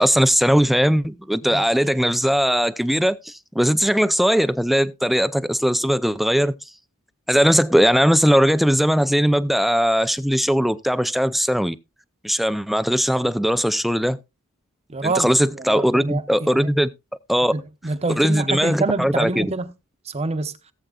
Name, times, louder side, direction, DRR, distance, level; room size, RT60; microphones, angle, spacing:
voice 1, 0.0-6.5 7.3-11.8 12.2-14.2 15.0-16.9 17.3-17.5 18.2-19.5, equal, ahead, 0.4 m, -19 dB
voice 2, 14.9-16.7 17.5-19.7 20.0-20.6, right 3 dB, 30° right, 0.9 m, -26 dB
17.5 x 7.9 x 2.4 m
head